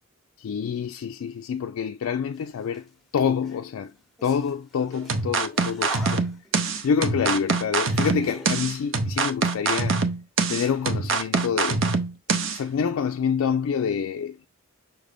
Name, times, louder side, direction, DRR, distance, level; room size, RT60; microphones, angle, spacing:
voice 1, 0.4-2.9 3.1-3.9 4.2-6.2 6.8-10.0 10.5-11.8 12.5-14.5, left 7 dB, 75° left, 0.3 m, -27 dB
sound 1, 2.3-2.9 3.3-8.5, equal, ahead, 0.7 m, -44 dB
sound 2, 5.1-12.6, right 4 dB, 60° right, 0.6 m, -24 dB
5.7 x 2.6 x 3.3 m
head